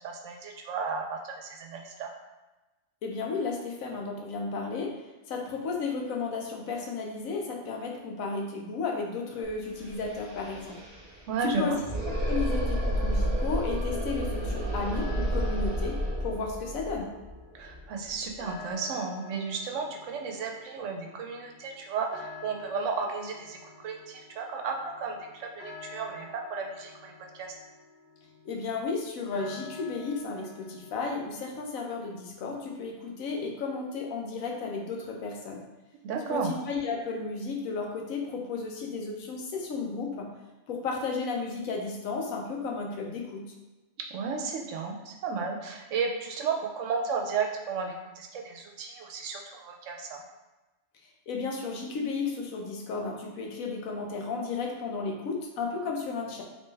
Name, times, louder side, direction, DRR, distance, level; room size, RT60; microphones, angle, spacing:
voice 1, 0.0-2.1 11.3-11.8 17.5-27.5 36.0-36.6 44.1-50.2, right 5 dB, 70° right, 2 dB, 0.9 m, -33 dB
voice 2, 3.0-10.8 11.4-11.8 12.1-17.1 28.4-35.6 36.3-40.3 40.7-43.5 51.3-56.4, left 4 dB, 90° left, 0 dB, 1.1 m, -33 dB
sound 1, 9.4-9.5 9.7-18.5, equal, 45° right, 1.0 m, -31 dB
sound 2, 14.9-31.4, left 4 dB, 60° left, 0.7 m, -50 dB
3.3 x 3.0 x 3.2 m, 1.1 s
omnidirectional pair, 1.4 m